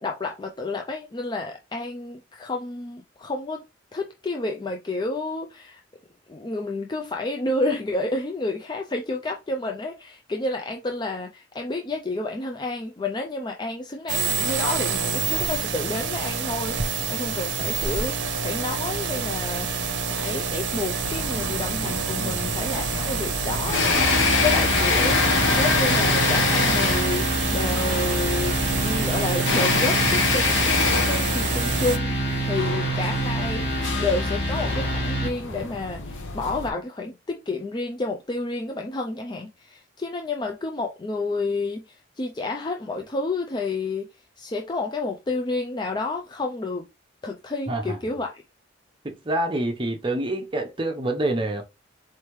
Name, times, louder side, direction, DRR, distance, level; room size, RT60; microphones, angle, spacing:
voice 1, 0.0-3.6 3.9-5.8 6.3-23.9 24.4-32.1 32.4-33.7 33.9-44.1 44.4-46.8 47.2-48.4, left 2 dB, 25° left, 0.4 m, -30 dB
sound 1, 14.1-32.0, right 5 dB, 70° right, 0.7 m, -28 dB
sound 2, 21.0-36.7, left 4 dB, 85° left, 1.0 m, -26 dB
voice 2, 22.2-22.5 47.7-48.2 49.0-51.6, right 1 dB, 25° right, 0.8 m, -27 dB
sound 3, 23.9-35.3, right 1 dB, 60° left, 2.0 m, -27 dB
4.3 x 3.1 x 3.1 m
head